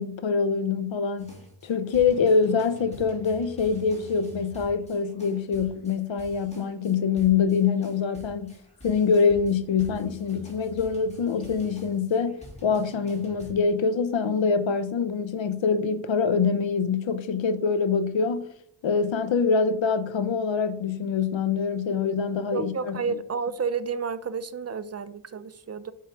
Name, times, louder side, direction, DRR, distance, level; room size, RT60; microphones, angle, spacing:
voice 1, 0.0-1.3 1.6-8.6 8.8-18.5 18.8-23.0, left 5 dB, 75° left, 0.7 m, -25 dB
sound 1, 1.2-13.5, left 1 dB, 15° left, 2.5 m, -47 dB
voice 2, 22.5-25.9, right 5 dB, 35° right, 0.4 m, -31 dB
7.4 x 3.7 x 4.5 m
wide cardioid pair, 85°, 46 cm